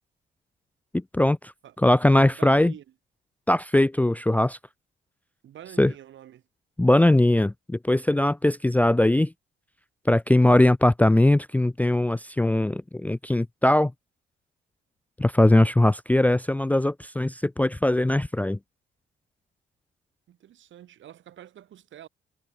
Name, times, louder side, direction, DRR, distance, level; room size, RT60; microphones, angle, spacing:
voice 1, 1.1-1.5 1.8-2.7 3.5-4.6 5.8-5.9 6.8-9.3 10.1-13.9 15.2-18.6, left 1 dB, 10° left, 0.5 m, -20 dB
voice 2, 2.3-2.8 5.4-6.4 20.3-22.1, right 11 dB, 70° right, 6.7 m, -46 dB
cardioid pair, 90°, 20 cm